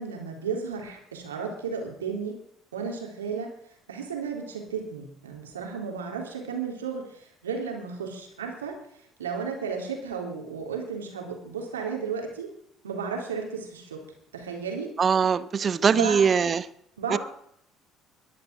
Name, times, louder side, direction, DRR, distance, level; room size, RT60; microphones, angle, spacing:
voice 1, 0.0-2.4 2.7-3.5 3.9-8.8 9.2-12.5 12.8-14.0 14.3-14.9 15.9-16.3 17.0-17.2, right 5 dB, 80° right, 3.5 m, -33 dB
voice 2, 15.0-16.7 17.1-17.2, right 6 dB, 35° right, 1.0 m, -22 dB
22.5 x 10.5 x 5.2 m
figure-of-eight pair, 55°, 0 cm